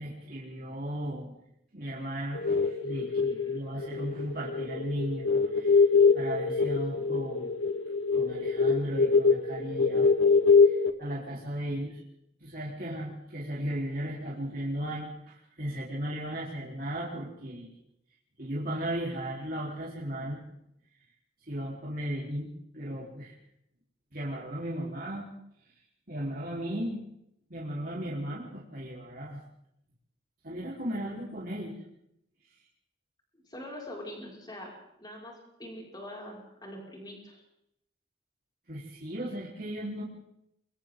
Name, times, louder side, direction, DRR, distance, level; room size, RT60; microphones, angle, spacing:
voice 1, 0.0-1.3 1.7-5.9 6.1-7.5 7.9-10.1 10.6-12.0 12.4-17.7 18.4-20.4 21.4-22.5 22.7-23.3 24.1-25.2 26.1-27.1 27.5-29.4 30.4-31.8 38.7-40.0, right 1 dB, 50° right, -6 dB, 4.1 m, -36 dB
sound 1, 2.3-10.9, left 4 dB, 85° left, 1.2 m, -24 dB
voice 2, 33.3-34.7 35.0-37.4, left 1 dB, 20° left, -2 dB, 5.8 m, -43 dB
30.0 x 23.5 x 3.9 m, 0.78 s
head